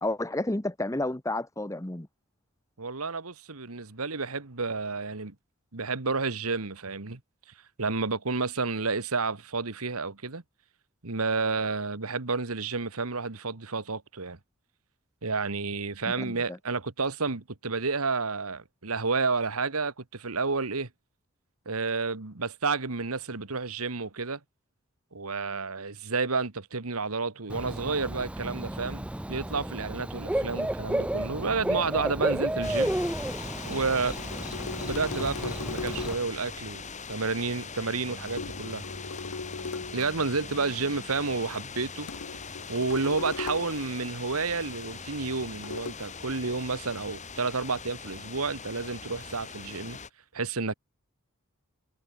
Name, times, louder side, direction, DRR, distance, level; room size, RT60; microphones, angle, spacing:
voice 1, 0.0-2.1 16.2-16.6, left 2 dB, 15° left, 1.0 m, -31 dB
voice 2, 2.8-5.3 5.7-7.2 7.8-10.4 11.0-14.4 15.2-20.9 21.7-24.4 25.1-32.9 33.7-34.2 34.8-36.8 37.1-38.8 39.9-42.1 42.7-50.0 50.3-50.7, right 4 dB, 90° right, 1.7 m, -30 dB
Bird / Cricket, 27.5-36.1, right 1 dB, 5° right, 0.4 m, -32 dB
sound 1, 32.6-50.1, left 5 dB, 35° left, 5.1 m, -41 dB
sound 2, 33.6-36.4 38.4-40.1 42.1-43.9 45.6-45.9, left 4 dB, 80° left, 0.9 m, -38 dB
head